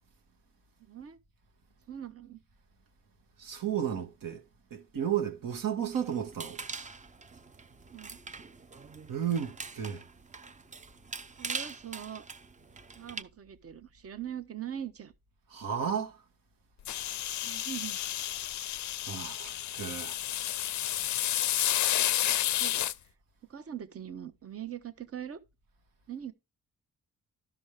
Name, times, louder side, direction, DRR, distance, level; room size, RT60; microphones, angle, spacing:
voice 1, 0.8-1.2 1.9-2.4 7.9-8.2 11.4-12.3 12.9-15.1 17.4-18.0 22.6-22.8 23.5-25.4 26.1-26.3, right 10 dB, 45° right, 0.9 m, -41 dB
voice 2, 3.4-4.4 4.7-6.6 9.1-10.1 15.5-16.2 19.0-20.2, right 9 dB, 70° right, 1.4 m, -33 dB
sound 1, 5.9-13.2, right 4 dB, 20° right, 0.5 m, -43 dB
sound 2, 16.8-22.9, left 12 dB, 55° left, 0.5 m, -31 dB
12.5 x 5.2 x 3.2 m
cardioid pair, 70°, 34 cm